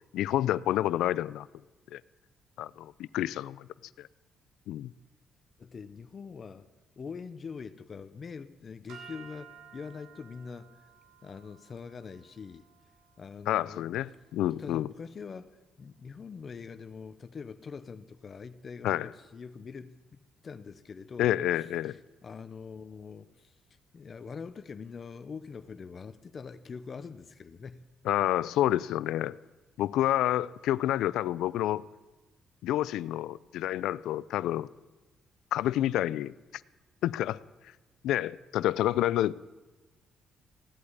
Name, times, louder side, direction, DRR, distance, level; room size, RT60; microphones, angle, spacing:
voice 1, 0.1-1.5 1.9-2.0 2.6-3.7 4.0-4.1 4.7-4.9 13.5-14.9 18.8-19.1 21.2-22.0 28.1-29.4 29.8-31.8 32.6-34.7 35.5-36.3 37.0-37.4 38.0-39.4, left 13 dB, 85° left, 0.4 m, -28 dB
voice 2, 5.6-6.7 7.0-10.9 11.2-12.7 13.2-13.9 14.6-23.6 23.9-27.9, left 5 dB, 45° left, 0.7 m, -44 dB
sound 1, 8.9-15.2, right 7 dB, 90° right, 2.3 m, -55 dB
16.5 x 8.5 x 9.5 m
cardioid pair, 90°, 0 cm